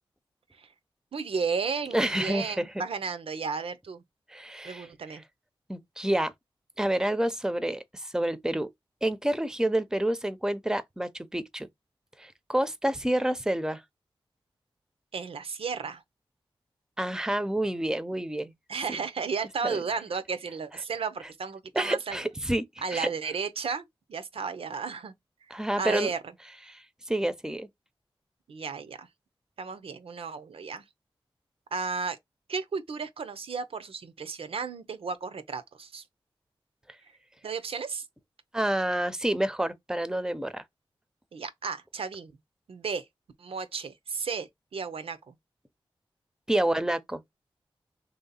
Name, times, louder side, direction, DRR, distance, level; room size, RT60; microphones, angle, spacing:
voice 1, 1.1-4.0 4.6-5.2 15.1-16.0 18.7-22.2 22.8-25.1 25.8-26.2 28.5-29.1 29.6-30.8 31.7-32.2 32.5-36.0 37.4-38.1 41.3-42.4 42.7-43.1 43.4-45.4, right 5 dB, 80° right, 0.6 m, -34 dB
voice 2, 1.9-2.8 4.3-4.9 5.7-6.3 6.8-8.7 9.0-11.7 12.2-13.8 17.0-18.5 19.6-19.8 21.7-22.6 22.9-23.1 25.5-26.1 26.7-27.7 38.5-40.6 46.5-47.2, right 1 dB, 5° right, 0.6 m, -28 dB
3.1 x 2.8 x 3.9 m
cardioid pair, 45°, 10 cm